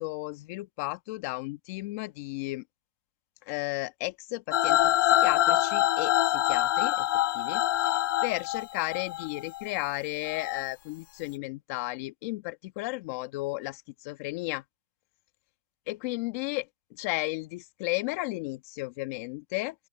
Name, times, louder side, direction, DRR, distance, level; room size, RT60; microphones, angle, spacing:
voice 1, 0.0-2.6 3.5-4.9 5.2-7.1 7.3-7.6 8.2-14.6 15.9-16.6 17.0-19.7, left 22 dB, 40° left, 1.4 m, -34 dB
sound 1, 4.5-9.7 10.3-10.6, left 13 dB, 55° left, 1.3 m, -25 dB
open air
hypercardioid pair, 160°, 13 cm